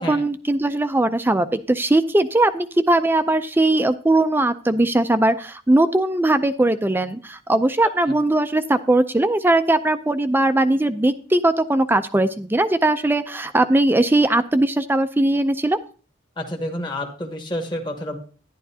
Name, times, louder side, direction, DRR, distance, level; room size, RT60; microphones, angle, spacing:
voice 1, 0.0-15.8, right 2 dB, 10° right, 10 dB, 0.4 m, -19 dB
voice 2, 7.8-8.2 16.4-18.2, left 1 dB, 25° left, 2 dB, 1.2 m, -29 dB
11.5 x 11.0 x 2.8 m, 0.39 s
head